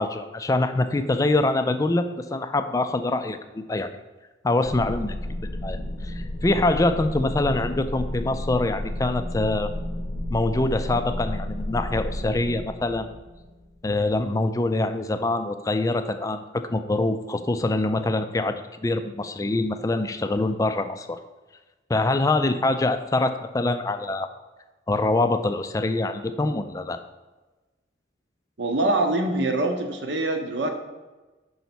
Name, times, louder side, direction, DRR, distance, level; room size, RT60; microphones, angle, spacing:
voice 1, 0.0-3.9 4.4-5.1 5.6-9.7 10.3-13.1 13.8-21.2 21.9-24.3 24.9-27.0, left 2 dB, 20° left, 9 dB, 0.3 m, -24 dB
sound 1, 4.6-13.9, left 1 dB, 50° left, 0.7 m, -32 dB
voice 2, 28.6-30.7, right 2 dB, 70° right, 5 dB, 0.9 m, -24 dB
5.5 x 4.0 x 6.0 m, 1.2 s
head